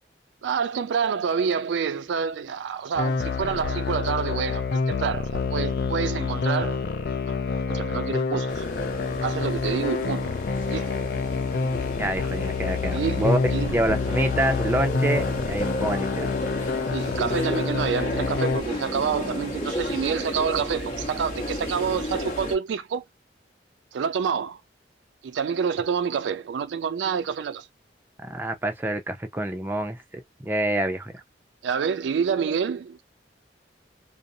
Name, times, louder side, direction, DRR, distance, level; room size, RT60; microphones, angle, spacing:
voice 1, 0.4-6.8 7.2-7.3 7.7-8.6 9.2-10.4 10.6-10.9 12.9-13.8 16.9-23.0 23.9-24.6 25.2-27.7 31.6-33.0, right 6 dB, 80° right, 0.3 m, -28 dB
sound 1, 2.9-18.6, left 4 dB, 60° left, 0.4 m, -27 dB
sound 2, 8.5-22.6, left 1 dB, 45° left, 0.9 m, -33 dB
voice 2, 12.0-16.3 28.2-31.1, right 1 dB, 10° right, 0.4 m, -27 dB
2.5 x 2.0 x 2.6 m
head